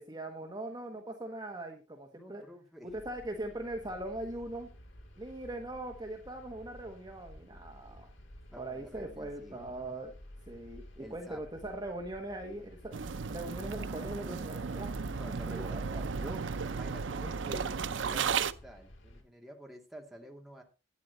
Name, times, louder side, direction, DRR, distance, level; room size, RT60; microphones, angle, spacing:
voice 1, 0.0-2.4 2.8-4.7 5.2-8.1 8.6-10.1 10.5-12.9 13.3-14.9 15.5-16.1, right 1 dB, 20° right, 2 dB, 1.4 m, -41 dB
voice 2, 2.1-2.9 8.5-9.6 11.0-11.4 15.0-15.7 16.1-20.6, equal, ahead, 0 dB, 2.4 m, -49 dB
sound 1, 2.9-19.2, equal, 85° left, 2.8 m, -54 dB
sound 2, 12.9-18.5, right 5 dB, 75° right, 0.6 m, -34 dB
11.5 x 9.7 x 4.1 m, 0.31 s
head